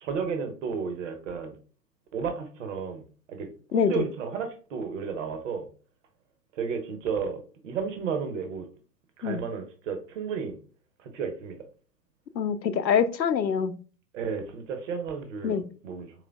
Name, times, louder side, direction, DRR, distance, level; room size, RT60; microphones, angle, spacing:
voice 1, 0.0-1.6 2.1-3.0 3.3-5.7 6.6-8.7 9.2-10.6 11.0-11.6 14.1-16.1, right 6 dB, 45° right, 0.8 m, -33 dB
voice 2, 3.7-4.0 9.2-9.4 12.4-13.8 15.4-15.6, left 7 dB, 85° left, 0.6 m, -25 dB
4.9 x 3.2 x 2.2 m
figure-of-eight pair, 110°, 50 cm